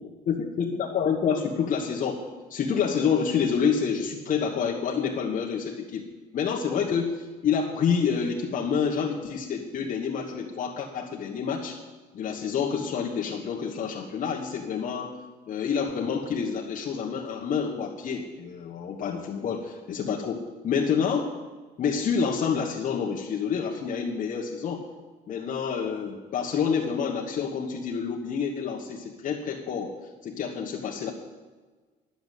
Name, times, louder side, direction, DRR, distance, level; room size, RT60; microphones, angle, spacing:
voice 1, 0.3-2.2 2.5-6.0 6.3-11.8 12.1-15.1 15.5-20.4 20.6-21.3 21.8-24.8 25.3-29.9 30.2-31.1, left 6 dB, 50° left, -2 dB, 1.3 m, -28 dB
11.0 x 7.0 x 8.2 m, 1.3 s
cardioid pair, 110°, 17 cm